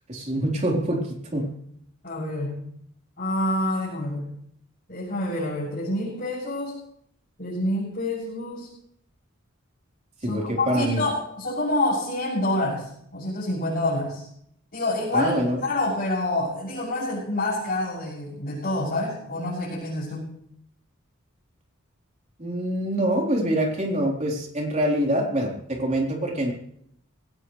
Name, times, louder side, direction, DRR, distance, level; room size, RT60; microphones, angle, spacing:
voice 1, 0.1-1.5 10.2-11.0 15.1-15.6 22.4-26.5, right 1 dB, 35° right, 0 dB, 3.9 m, -25 dB
voice 2, 2.0-2.6 3.2-4.3 4.9-6.7 7.4-8.7 10.3-14.2 14.7-15.4 15.6-20.2, left 1 dB, 45° left, -9 dB, 7.1 m, -27 dB
21.5 x 18.0 x 3.3 m, 0.69 s
head